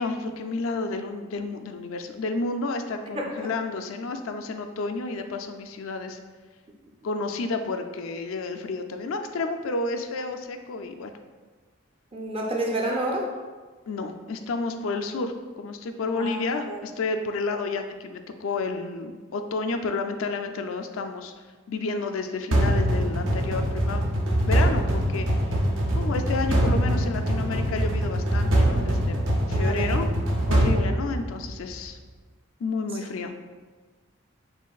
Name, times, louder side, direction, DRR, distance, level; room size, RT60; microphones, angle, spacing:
voice 1, 0.0-6.2 7.0-11.1 13.9-21.3 21.7-24.0 24.4-25.3 25.9-29.2 29.5-30.1 30.5-32.0 32.6-33.3, left 3 dB, 80° left, 6 dB, 0.4 m, -30 dB
voice 2, 12.1-13.3 16.2-16.8 29.5-29.9 30.7-30.9, right 1 dB, 30° right, -1 dB, 0.5 m, -29 dB
sound 1, 22.5-31.7, right 1 dB, 65° right, 0.7 m, -23 dB
6.9 x 2.5 x 2.3 m, 1.4 s
head